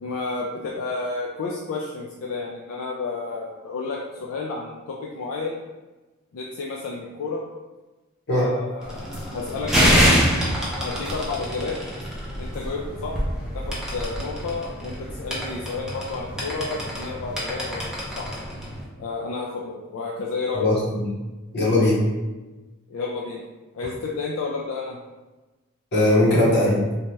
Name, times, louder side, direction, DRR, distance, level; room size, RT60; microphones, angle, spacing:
voice 1, 0.0-5.6 6.3-7.4 8.3-10.3 10.8-11.8 12.4-13.1 13.4-18.3 19.0-20.7 22.9-23.4 23.7-25.0, left 3 dB, 70° left, -3 dB, 0.3 m, -31 dB
sound 1, 8.8-18.8, equal, 5° right, 0.4 m, -26 dB
voice 2, 20.5-21.0 21.5-22.0 25.9-26.8, left 1 dB, 50° left, -5 dB, 0.8 m, -19 dB
2.7 x 2.2 x 3.1 m, 1.2 s
head